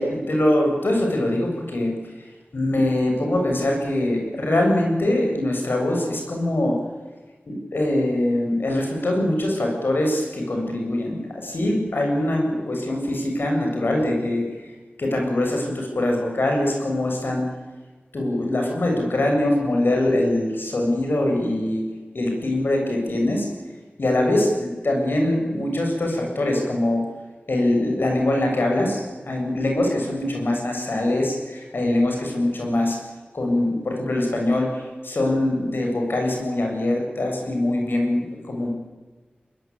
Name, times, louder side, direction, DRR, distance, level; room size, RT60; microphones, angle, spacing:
voice 1, 0.0-1.9 2.5-6.8 7.5-14.7 15.0-17.5 18.1-21.8 22.1-23.5 24.0-27.0 27.5-33.0 33.3-38.7, left 1 dB, 75° left, 1 dB, 7.4 m, -23 dB
23.0 x 20.5 x 8.8 m, 1.3 s
wide cardioid pair, 50°, 4 cm